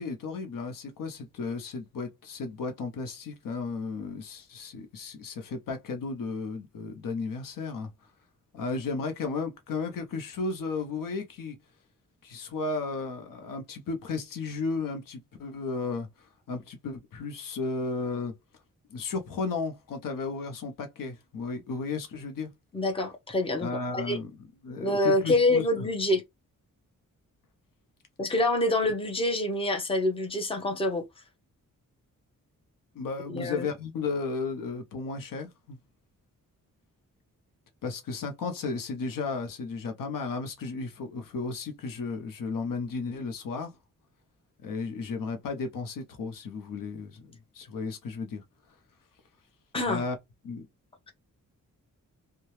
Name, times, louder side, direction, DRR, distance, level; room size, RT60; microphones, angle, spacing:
voice 1, 0.0-7.9 8.5-11.6 12.2-16.1 16.5-18.3 18.9-22.5 23.6-24.3 24.6-25.9 32.9-35.8 37.8-43.7 44.6-47.3 47.5-48.4 49.8-50.2 50.4-50.7, left 4 dB, 85° left, 0.8 m, -34 dB
voice 2, 22.7-24.2 24.8-26.2 28.2-31.0 33.3-33.7 49.7-50.1, left 1 dB, 15° left, 0.8 m, -26 dB
2.7 x 2.3 x 3.1 m
wide cardioid pair, 125°, 32 cm